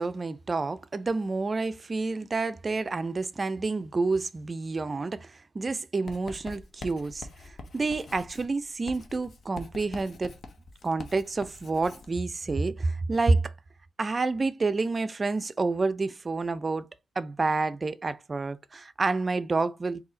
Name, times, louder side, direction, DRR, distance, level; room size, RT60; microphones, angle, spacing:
voice 1, 0.0-10.3 10.8-13.5 14.0-16.9 17.2-20.0, right 3 dB, 35° right, 0.4 m, -29 dB
Writing, 6.1-12.1, left 3 dB, 60° left, 0.8 m, -45 dB
4.0 x 2.7 x 3.8 m
cardioid pair, 85°, 0 cm